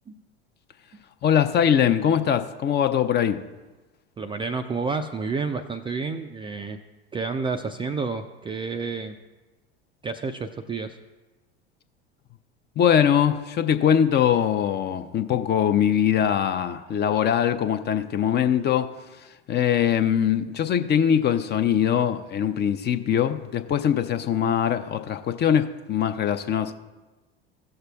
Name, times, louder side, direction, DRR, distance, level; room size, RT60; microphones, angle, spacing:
voice 1, 1.2-3.4 12.8-18.9 19.5-26.7, left 9 dB, 35° left, 0.6 m, -22 dB
voice 2, 4.2-6.8 7.1-9.2 10.0-11.0, right 4 dB, 15° right, 0.3 m, -30 dB
15.5 x 6.6 x 2.3 m
hypercardioid pair, 75°, 32 cm